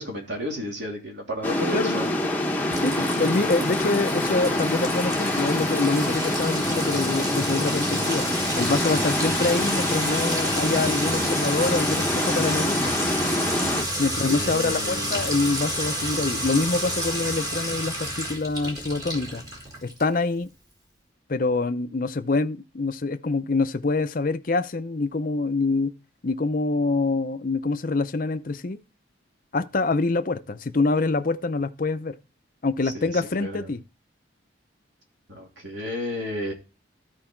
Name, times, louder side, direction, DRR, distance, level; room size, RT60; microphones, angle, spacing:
voice 1, 0.0-2.3 14.3-15.3 32.8-33.7 35.3-36.5, equal, 65° right, 3.1 m, -32 dB
sound 1, 1.4-13.8, left 1 dB, 10° left, 0.9 m, -26 dB
Sink (filling or washing) / Trickle dribble / Fill (with liquid), 2.7-20.2, equal, 20° right, 1.7 m, -30 dB
voice 2, 2.8-8.3 8.6-12.9 14.0-19.4 19.8-20.5 21.3-25.9 26.2-28.8 29.5-32.2 32.6-33.8, left 3 dB, 45° left, 0.6 m, -25 dB
13.0 x 4.6 x 4.5 m
head